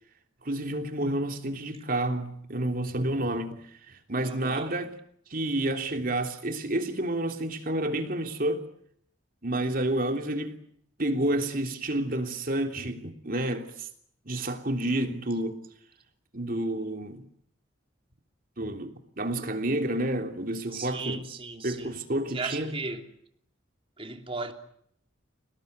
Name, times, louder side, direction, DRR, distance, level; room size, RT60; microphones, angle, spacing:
voice 1, 0.4-3.6 3.9-4.9 5.3-8.6 9.4-10.6 11.0-13.9 14.2-15.6 16.3-17.3 18.6-21.2 21.6-22.7, right 1 dB, 45° right, 3.2 m, -29 dB
voice 2, 4.2-4.7 20.7-22.0 22.3-23.1 24.0-24.5, right 3 dB, 30° right, 3.0 m, -36 dB
29.5 x 19.0 x 9.5 m
head